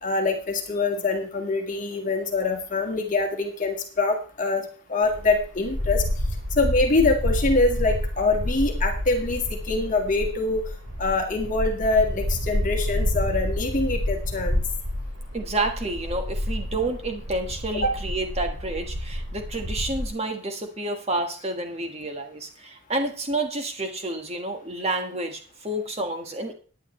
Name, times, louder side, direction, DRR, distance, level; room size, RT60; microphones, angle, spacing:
voice 1, 0.0-6.0 6.5-10.6 11.0-14.6 17.8-17.9, left 3 dB, 40° left, 2 dB, 1.8 m, -24 dB
sound 1, 5.0-20.1, left 1 dB, 80° right, 2.7 m, -29 dB
voice 2, 15.3-26.5, right 2 dB, 30° right, 4 dB, 1.5 m, -29 dB
15.5 x 9.7 x 3.2 m, 0.41 s
head